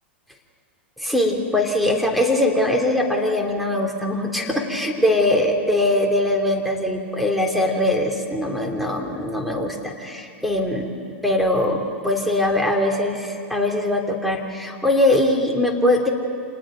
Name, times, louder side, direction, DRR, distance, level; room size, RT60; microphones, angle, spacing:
voice 1, 1.0-10.9 11.2-16.1, left 1 dB, ahead, 1 dB, 3.2 m, -21 dB
28.0 x 19.5 x 5.3 m, 2.4 s
hypercardioid pair, 100°, 6 cm